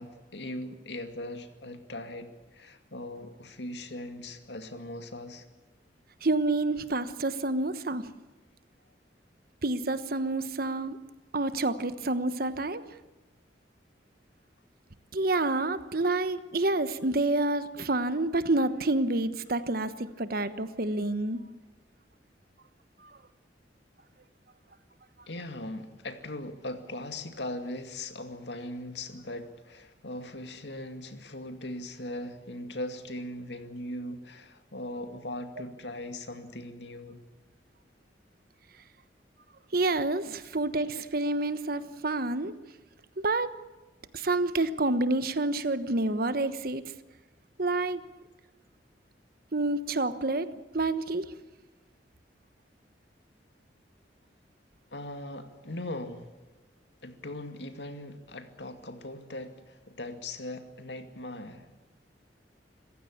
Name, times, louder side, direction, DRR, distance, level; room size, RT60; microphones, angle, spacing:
voice 1, 0.0-5.4 25.3-37.2 54.9-56.3 57.0-61.7, left 1 dB, 70° left, 7 dB, 2.4 m, -39 dB
voice 2, 6.2-8.1 9.6-11.0 11.3-12.8 15.1-21.4 23.0-23.1 39.7-42.5 43.2-43.5 44.1-46.9 47.6-48.0 49.5-50.5 50.7-51.3, right 2 dB, 55° right, 12 dB, 1.2 m, -28 dB
26.5 x 15.5 x 8.7 m, 1.2 s
head